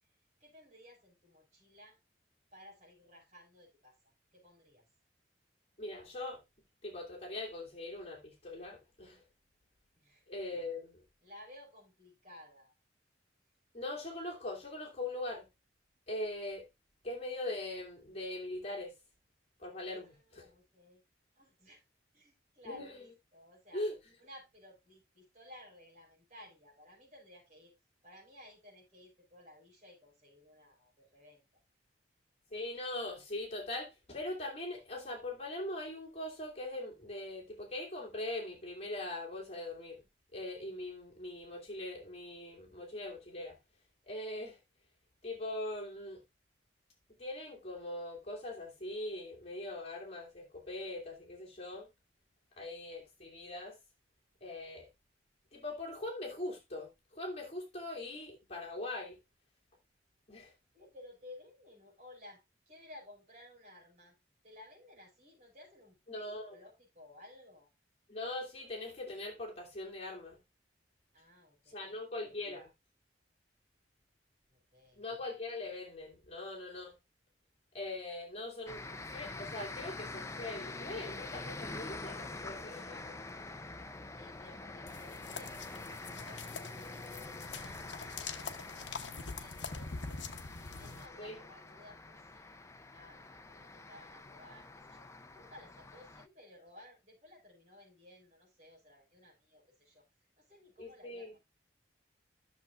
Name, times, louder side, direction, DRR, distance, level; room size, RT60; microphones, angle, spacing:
voice 1, 0.4-2.0 2.5-4.0 4.3-4.8 10.0-10.2 11.2-12.7 19.8-21.0 21.4-21.8 22.1-23.9 24.2-27.7 28.0-31.6 60.7-64.2 64.4-67.7 71.1-72.0 74.5-75.0 84.1-85.7 86.1-90.3 90.7-92.5 92.9-100.1 100.4-101.4, left 1 dB, 40° right, 5.4 m, -57 dB
voice 2, 5.8-6.4 6.8-9.2 10.3-11.0 13.7-15.5 16.1-16.7 17.0-18.9 19.6-20.5 22.6-23.0 23.7-23.9 32.5-40.0 40.3-43.6 44.1-44.6 45.2-46.2 47.2-51.9 52.6-53.8 54.4-54.9 55.5-59.2 60.3-60.5 66.1-66.6 68.1-70.4 71.7-72.7 74.9-76.9 77.7-83.2 91.2-91.4 100.8-101.3, left 2 dB, 35° left, 2.7 m, -41 dB
sound 1, 78.7-96.3, left 2 dB, 15° left, 0.5 m, -46 dB
sound 2, 84.9-91.1, left 4 dB, 70° left, 1.0 m, -44 dB
13.5 x 6.8 x 2.4 m
head